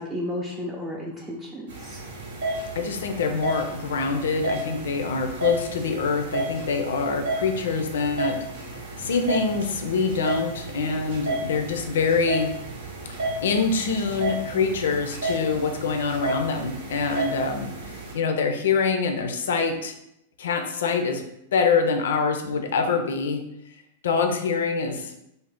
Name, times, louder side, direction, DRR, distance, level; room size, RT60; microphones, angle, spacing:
voice 1, 0.0-2.0, left 1 dB, 15° right, -3 dB, 0.4 m, -33 dB
sound 1, 1.7-18.1, right 2 dB, 70° right, 0.7 m, -32 dB
voice 2, 2.7-8.4 8.6-12.5 13.4-19.9 20.4-21.2 21.5-23.4 24.0-25.1, left 5 dB, 75° left, 5 dB, 0.4 m, -25 dB
2.5 x 2.0 x 3.4 m, 0.82 s
hypercardioid pair, 105°, 0 cm